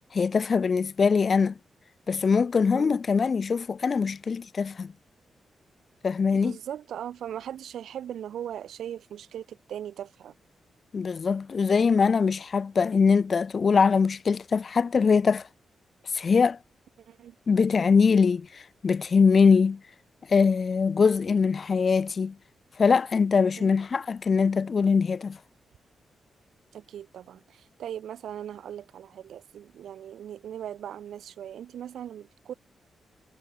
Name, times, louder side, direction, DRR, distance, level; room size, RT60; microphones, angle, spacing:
voice 1, 0.1-1.5 2.1-4.9 6.0-6.5 10.9-15.4 16.1-16.6 17.5-19.8 20.3-22.4 22.8-25.4, left 5 dB, 40° left, 1.5 m, -22 dB
voice 2, 6.3-10.4 17.1-17.4 23.6-23.7 26.7-32.5, right 10 dB, 90° right, 5.1 m, -39 dB
wide cardioid pair, 135°, 0 cm